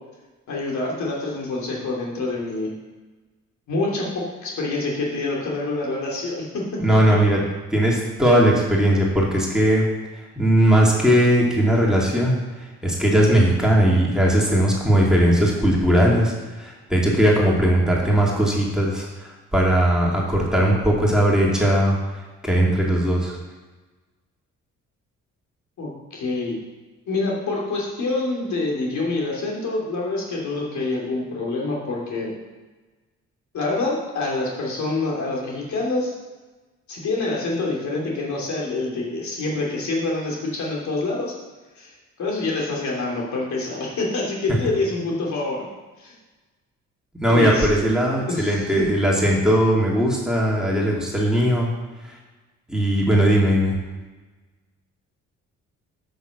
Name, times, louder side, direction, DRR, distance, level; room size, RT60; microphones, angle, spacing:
voice 1, 0.5-2.7 3.7-6.8 25.8-26.6 27.1-32.3 33.5-36.1 36.9-41.3 41.8-41.9 42.2-45.7 46.0-46.1 47.3-47.7 48.3-48.6, left 2 dB, 70° left, -3 dB, 3.1 m, -26 dB
voice 2, 6.8-7.4 7.7-9.9 10.4-22.0 22.4-23.4 47.2-51.7 52.0-52.2 52.7-53.8, right 1 dB, ahead, -4 dB, 2.7 m, -19 dB
7.9 x 6.6 x 6.5 m, 1.2 s
cardioid pair, 90°, 30 cm